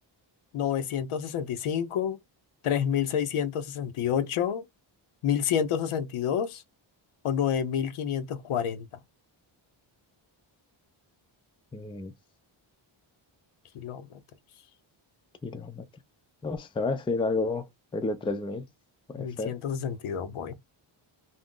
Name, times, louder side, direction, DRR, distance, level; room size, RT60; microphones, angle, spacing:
voice 1, 0.5-2.2 2.6-4.7 5.2-6.6 7.2-8.9 13.7-14.2 19.2-20.5, left 8 dB, 85° left, 0.6 m, -29 dB
voice 2, 11.7-12.1 15.4-15.9 16.4-17.6 17.9-18.6 19.1-19.6, left 3 dB, 10° left, 0.3 m, -30 dB
2.5 x 2.0 x 3.5 m
wide cardioid pair, 110°, 49 cm